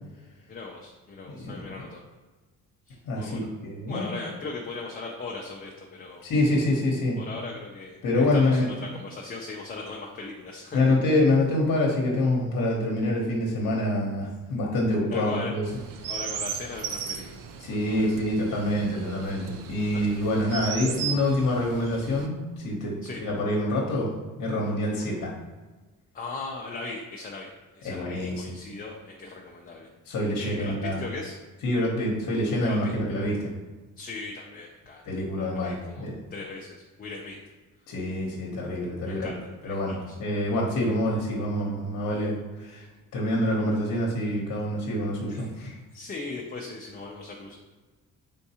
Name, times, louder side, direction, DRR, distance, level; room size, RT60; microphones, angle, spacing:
voice 1, 0.5-2.0 2.9-3.5 3.9-6.2 7.2-10.9 15.1-15.5 16.1-17.3 17.7-18.3 19.8-20.2 23.0-23.2 25.1-25.3 26.1-29.9 30.4-31.3 32.6-32.9 34.0-35.2 35.5-37.4 39.0-40.2 45.3-45.5 45.9-47.5, left 3 dB, 30° left, -1 dB, 0.5 m, -39 dB
voice 2, 1.3-1.6 3.0-4.0 6.2-7.2 8.0-8.7 10.7-15.6 17.6-24.1 24.4-25.3 27.8-28.4 30.1-31.0 31.6-33.5 35.0-36.2 37.9-39.3 39.6-42.9 43.1-45.8, left 1 dB, 60° left, -2 dB, 0.9 m, -26 dB
Chirp tweet, 15.6-22.3, right 7 dB, 75° right, 0.5 m, -36 dB
4.4 x 3.6 x 2.8 m, 1.3 s
cardioid pair, 115°, 33 cm